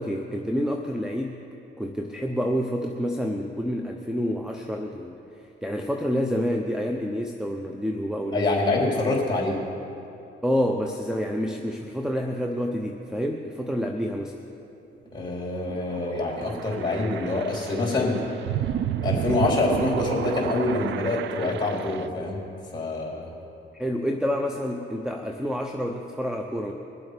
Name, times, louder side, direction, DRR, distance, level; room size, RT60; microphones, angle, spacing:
voice 1, 0.0-1.4 1.8-8.7 10.4-14.4 23.7-26.7, equal, 5° right, 3 dB, 0.8 m, -28 dB
voice 2, 8.3-9.6 15.1-18.2 19.0-22.4 22.7-23.3, left 2 dB, 20° left, -2 dB, 3.9 m, -25 dB
sound 1, 15.1-22.1, right 11 dB, 70° right, 0.5 m, -32 dB
21.5 x 7.8 x 5.2 m, 2.8 s
cardioid pair, 90°, 20 cm